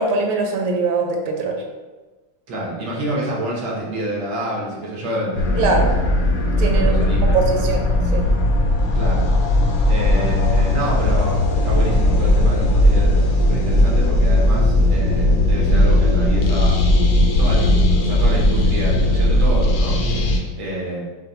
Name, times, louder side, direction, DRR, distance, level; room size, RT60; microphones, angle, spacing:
voice 1, 0.0-1.5 5.6-5.9 6.6-7.0 7.3-8.2, right 3 dB, 90° right, 2 dB, 1.6 m, -21 dB
voice 2, 2.5-5.8 6.7-7.7 8.9-9.3 9.8-16.8 17.4-20.3 20.5-21.0, equal, 70° right, -5 dB, 1.8 m, -28 dB
sound 1, 5.4-20.4, left 1 dB, 70° left, 1.2 m, -17 dB
5.6 x 2.3 x 3.8 m, 1.2 s
omnidirectional pair, 2.3 m